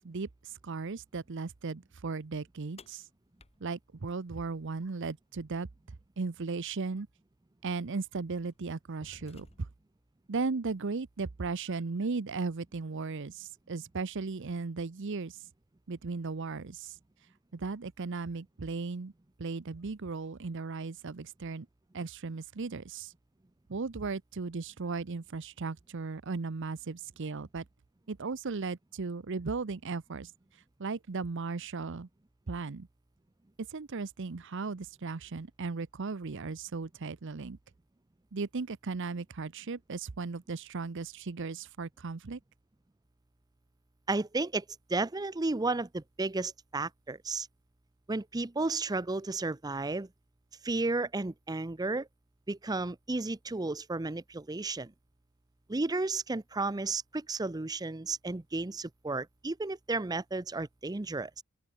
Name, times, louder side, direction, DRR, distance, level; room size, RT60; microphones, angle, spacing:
voice 1, 0.0-3.0 3.6-5.7 6.2-7.1 7.6-9.7 10.3-15.4 15.9-17.0 17.5-19.1 19.4-21.7 21.9-23.1 23.7-27.6 28.1-30.3 30.8-32.1 32.5-32.9 33.6-37.6 38.3-42.4, right 4 dB, 60° right, 0.7 m, -36 dB
sound 1, 2.8-4.9 6.8-6.9 7.8-8.0 8.5-9.9, left 2 dB, 30° left, 1.7 m, -56 dB
voice 2, 44.1-44.6 44.9-47.5 48.1-50.1 50.6-52.1 52.5-54.9 55.7-61.4, right 3 dB, 20° right, 0.6 m, -33 dB
open air
head